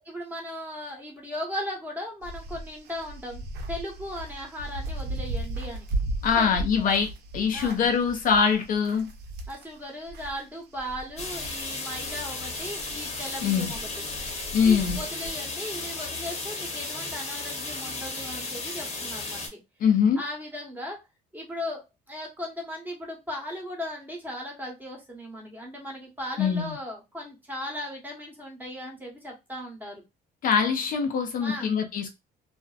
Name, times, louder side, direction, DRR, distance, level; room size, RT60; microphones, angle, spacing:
voice 1, 0.0-5.9 6.4-6.9 7.5-7.8 9.5-13.9 14.6-19.6 20.2-21.0 21.3-30.0 31.4-31.7, left 1 dB, 10° right, 1.0 m, -37 dB
sound 1, 2.2-10.4 10.7-15.3, right 2 dB, 75° right, 0.6 m, -36 dB
voice 2, 6.2-7.1 7.3-9.1 13.4-13.7 14.5-15.0 19.8-20.2 26.4-26.8 30.4-32.1, left 6 dB, 55° left, 0.5 m, -23 dB
sound 2, 11.2-19.5, left 3 dB, 40° left, 0.9 m, -34 dB
2.5 x 2.0 x 2.4 m
cardioid pair, 110°, 17 cm